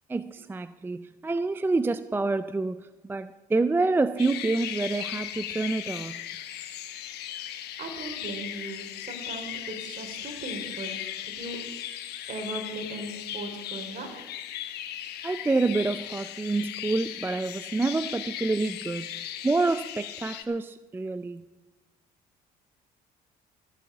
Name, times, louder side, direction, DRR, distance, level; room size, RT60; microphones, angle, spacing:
voice 1, 0.1-6.2 15.2-21.4, right 3 dB, 10° right, 0.4 m, -28 dB
sound 1, 4.2-20.4, left 11 dB, 75° left, 1.2 m, -37 dB
voice 2, 7.8-11.7 12.3-14.2, right 2 dB, 50° right, 3.5 m, -38 dB
14.0 x 8.4 x 8.6 m
cardioid pair, 110°, 17 cm